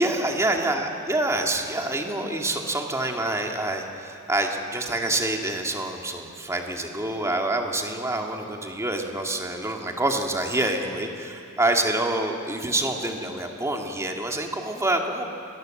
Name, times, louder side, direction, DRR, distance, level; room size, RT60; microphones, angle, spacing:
voice 1, 0.0-15.2, right 1 dB, 15° right, 2 dB, 2.2 m, -26 dB
27.0 x 20.5 x 7.8 m, 2.6 s
head